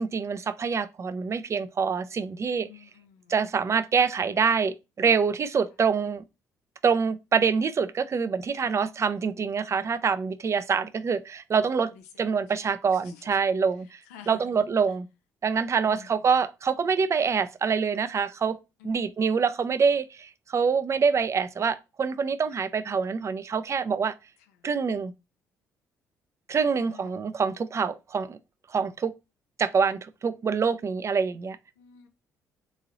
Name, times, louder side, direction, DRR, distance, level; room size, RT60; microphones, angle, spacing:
voice 1, 0.0-2.7 3.3-6.2 6.8-11.9 12.2-14.0 14.3-15.1 15.4-18.6 18.8-24.1 24.6-25.1 26.5-28.4 28.7-29.1 29.6-31.6, right 5 dB, 35° right, 0.4 m, -25 dB
voice 2, 2.6-3.3 8.6-8.9 10.7-10.8 12.9-13.2 14.1-14.6 15.8-16.1 18.8-19.1 26.6-27.2 31.8-32.1, left 10 dB, 80° left, 0.6 m, -50 dB
3.7 x 3.1 x 2.5 m
hypercardioid pair, 50°, 8 cm